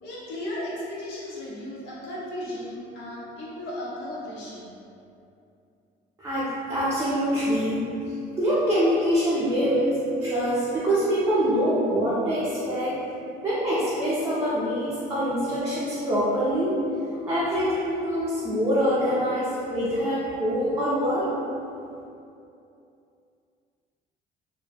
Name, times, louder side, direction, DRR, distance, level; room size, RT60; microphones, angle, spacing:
voice 1, 0.0-4.8, left 1 dB, 85° left, -6 dB, 0.7 m, -35 dB
voice 2, 6.2-12.9 13.4-16.8 17.3-21.3, equal, 15° right, -10 dB, 0.4 m, -25 dB
2.2 x 2.1 x 2.7 m, 2.6 s
cardioid pair, 110°, 17 cm